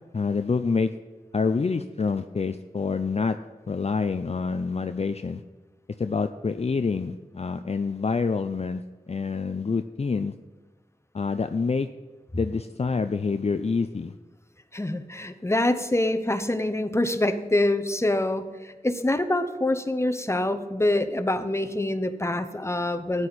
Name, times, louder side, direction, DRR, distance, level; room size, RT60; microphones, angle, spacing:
voice 1, 0.1-0.9 1.3-3.4 3.7-5.4 6.0-10.3 11.1-11.9 12.3-14.1, left 4 dB, 45° left, 9 dB, 0.4 m, -27 dB
voice 2, 14.7-18.5 18.8-23.3, left 1 dB, 15° left, 9 dB, 0.9 m, -25 dB
13.0 x 9.6 x 4.2 m, 1.3 s
wide cardioid pair, 75°, 16 cm